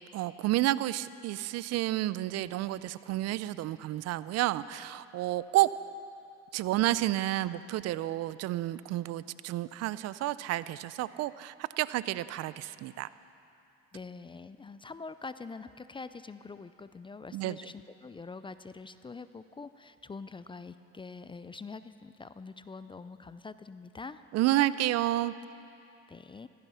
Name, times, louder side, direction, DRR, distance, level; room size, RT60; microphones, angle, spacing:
voice 1, 0.1-5.7 6.5-13.1 17.3-17.6 24.3-25.3, right 15 dB, 60° right, 17 dB, 0.5 m, -30 dB
voice 2, 13.9-24.2 26.1-26.5, left 4 dB, 15° left, 13 dB, 0.5 m, -45 dB
15.5 x 13.5 x 5.6 m, 2.7 s
supercardioid pair, 85°, 29 cm